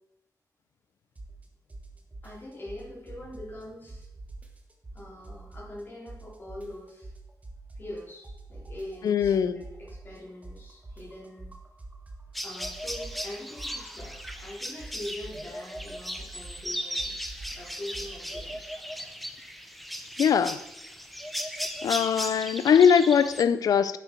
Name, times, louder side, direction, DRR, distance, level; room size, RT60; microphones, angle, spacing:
sound 1, 1.2-1.4 1.7-3.6 3.9-5.8 6.1-12.4 12.6-18.5, right 2 dB, 25° right, 1.3 m, -44 dB
voice 1, 2.2-4.1 4.9-7.1 7.8-11.5 12.4-17.1 17.5-18.8, left 1 dB, 35° left, -4 dB, 3.6 m, -43 dB
voice 2, 9.0-9.6 20.2-20.6 21.8-24.0, left 7 dB, 75° left, 14 dB, 0.5 m, -21 dB
sound 2, 12.3-23.4, equal, ahead, 0.7 m, -37 dB
9.1 x 7.8 x 4.4 m, 0.91 s
wide cardioid pair, 115°, 6 cm